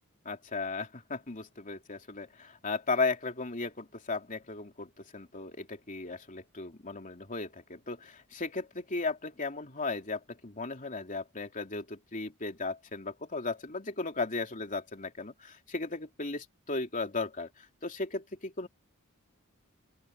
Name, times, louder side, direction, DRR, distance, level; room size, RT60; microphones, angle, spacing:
voice 1, 0.2-18.7, left 3 dB, 35° left, 3.2 m, -36 dB
open air
head